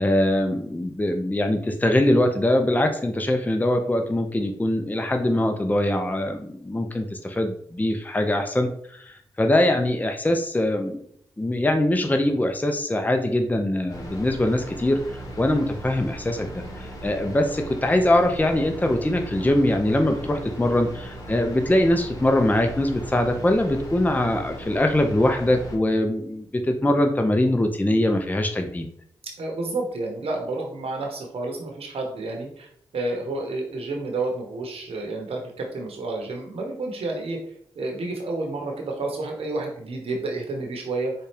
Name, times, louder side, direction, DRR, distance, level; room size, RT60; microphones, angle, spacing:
voice 1, 0.0-8.7 9.0-11.0 11.4-15.0 15.4-16.5 17.0-28.9, left 1 dB, 15° left, 4 dB, 0.6 m, -22 dB
sound 1, 13.9-25.8, right 1 dB, 40° left, 1.6 m, -38 dB
voice 2, 29.4-32.7 32.9-37.4 37.7-41.1, right 2 dB, 70° right, 1 dB, 0.9 m, -30 dB
4.1 x 2.4 x 3.4 m, 0.64 s
supercardioid pair, 40°, 10 cm